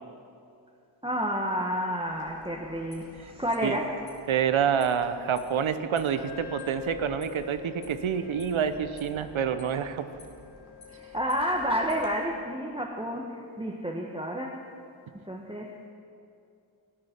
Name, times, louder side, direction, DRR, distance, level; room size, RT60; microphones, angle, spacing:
voice 1, 1.0-4.0 10.9-14.7 15.1-15.7, equal, 10° right, -1 dB, 1.1 m, -30 dB
sound 1, 2.0-12.1, left 2 dB, 70° left, 2.5 m, -52 dB
voice 2, 4.3-10.1, right 8 dB, 80° right, 11 dB, 0.8 m, -27 dB
Wind instrument woodwind instrument, 6.1-13.4, left 9 dB, 50° left, 0.9 m, -46 dB
14.0 x 9.6 x 5.8 m, 2.5 s
cardioid pair, 60°, 47 cm